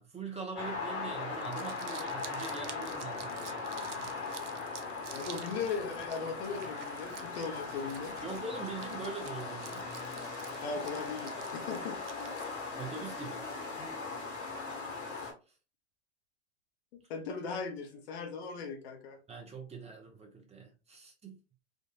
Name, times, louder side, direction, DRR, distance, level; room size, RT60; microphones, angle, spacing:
voice 1, 0.0-4.1 8.2-9.9 10.7-10.9 11.3-11.4 12.8-13.5 19.3-21.4, right 4 dB, 20° right, 0.9 m, -43 dB
sound 1, 0.6-15.3, left 4 dB, 45° left, 1.3 m, -39 dB
Crumpling crinkling, 1.3-13.0, right 8 dB, 80° right, 0.6 m, -51 dB
voice 2, 5.1-8.1 10.6-12.0 12.4-12.6 16.9-19.2, left 5 dB, 60° left, 1.0 m, -38 dB
3.7 x 2.5 x 2.4 m
hypercardioid pair, 90°, 35 cm